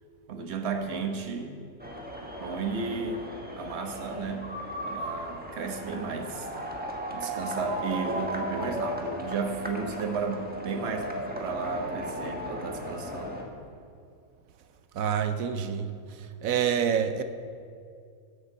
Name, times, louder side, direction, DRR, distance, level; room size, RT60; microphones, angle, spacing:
voice 1, 0.3-1.6 2.4-3.2 3.6-4.5 4.8-6.5 7.1-13.4, right 4 dB, 50° right, 4 dB, 1.3 m, -33 dB
sound 1, 1.8-13.4, equal, 5° right, 1.1 m, -36 dB
voice 2, 14.9-15.9 16.4-17.2, right 8 dB, 70° right, 10 dB, 1.0 m, -26 dB
12.0 x 6.7 x 8.0 m, 2.4 s
omnidirectional pair, 1.6 m